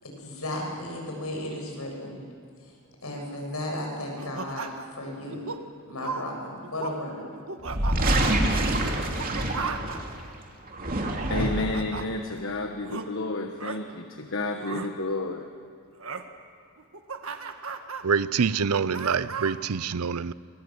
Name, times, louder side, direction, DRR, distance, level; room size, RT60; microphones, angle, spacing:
voice 1, 0.0-2.2 2.6-2.7 3.0-4.7 5.0-5.4 5.9-7.3, left 1 dB, 75° left, 7.9 m, -34 dB
sound 1, 4.2-4.9 5.3-5.6 6.0-6.3 6.6-7.0 7.3-8.1 9.0-10.0 11.0-12.0 12.9-13.0 13.6-13.8 14.5-14.9 16.0-16.2 16.8-18.0 18.5-19.6, right 4 dB, 65° right, 1.6 m, -35 dB
sound 2, 7.6-10.2 10.7-11.8, right 1 dB, 40° right, 2.9 m, -26 dB
voice 2, 11.3-15.5, left 2 dB, 60° left, 1.3 m, -31 dB
voice 3, 18.0-20.3, right 6 dB, 90° right, 0.6 m, -26 dB
24.0 x 23.0 x 8.0 m
head